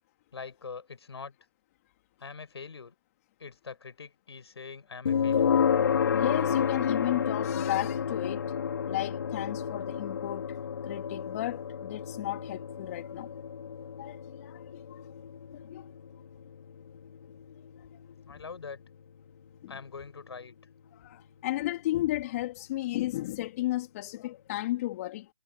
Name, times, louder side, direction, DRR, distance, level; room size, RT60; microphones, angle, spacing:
voice 1, 0.3-1.3 2.2-2.9 3.4-5.6 18.3-18.8 19.7-20.6, left 5 dB, 70° left, 6.8 m, -43 dB
sound 1, 5.1-20.0, left 7 dB, 55° left, 3.8 m, -31 dB
voice 2, 6.1-8.5 8.9-10.6 10.9-13.3 14.0-15.0 15.5-15.9 19.6-19.7 20.9-25.3, left 16 dB, 35° left, 3.1 m, -34 dB
figure-of-eight pair, 145°, 14 cm